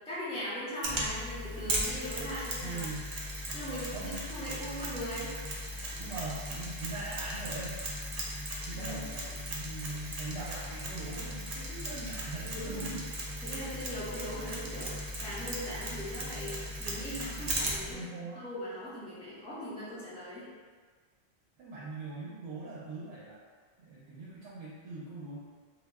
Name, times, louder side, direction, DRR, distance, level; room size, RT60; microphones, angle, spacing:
voice 1, 0.1-2.8 3.5-5.3 5.9-6.0 8.7-9.0 12.5-13.0 13.4-18.0 18.4-20.5, equal, 5° left, -12 dB, 0.6 m, -40 dB
Mechanisms, 0.8-17.9, equal, 55° right, 0.4 m, -37 dB
voice 2, 2.6-3.1 3.9-4.2 6.0-7.8 8.7-13.1 17.9-18.4 21.6-23.4 23.8-25.4, right 3 dB, 85° right, -7 dB, 0.9 m, -41 dB
2.3 x 2.0 x 3.4 m, 1.5 s
omnidirectional pair, 1.1 m